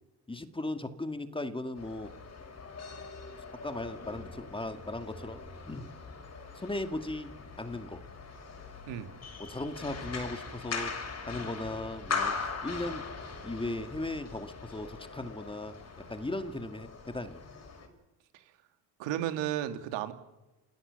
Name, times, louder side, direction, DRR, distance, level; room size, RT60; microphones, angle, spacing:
voice 1, 0.3-2.1 3.5-5.4 5.7-5.9 6.5-8.0 9.4-10.9 11.3-12.4 12.6-13.1 13.4-15.7 16.1-17.4, left 2 dB, 10° left, 9 dB, 2.1 m, -37 dB
sound 1, 1.8-17.9, left 4 dB, 35° left, 5.6 m, -41 dB
voice 2, 19.0-20.1, right 11 dB, 75° right, 8 dB, 2.7 m, -33 dB
28.5 x 18.5 x 7.0 m, 1.1 s
supercardioid pair, 95°, 44 cm